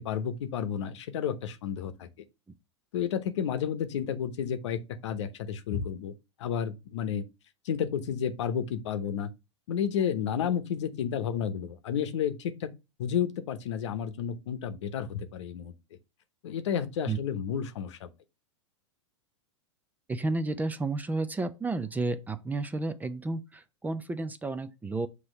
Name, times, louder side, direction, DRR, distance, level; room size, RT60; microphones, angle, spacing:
voice 1, 0.0-2.1 2.9-6.1 6.4-7.2 7.6-9.3 9.7-12.7 13.0-15.7 16.4-18.1, left 8 dB, 70° left, 0.9 m, -31 dB
voice 2, 20.1-25.1, right 3 dB, 10° right, 0.5 m, -31 dB
6.1 x 2.9 x 5.4 m
hypercardioid pair, 115°, 15 cm